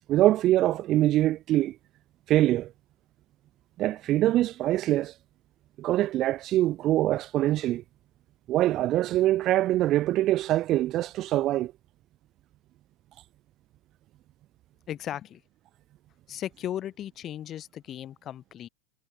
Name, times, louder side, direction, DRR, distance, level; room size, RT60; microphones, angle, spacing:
voice 1, 0.1-1.8 2.3-2.7 3.8-5.1 5.8-7.8 8.5-11.7, right 14 dB, 25° right, 2.1 m, -24 dB
voice 2, 14.9-15.4 16.3-18.7, left 11 dB, 20° left, 7.4 m, -36 dB
supercardioid pair, 175°, 0 cm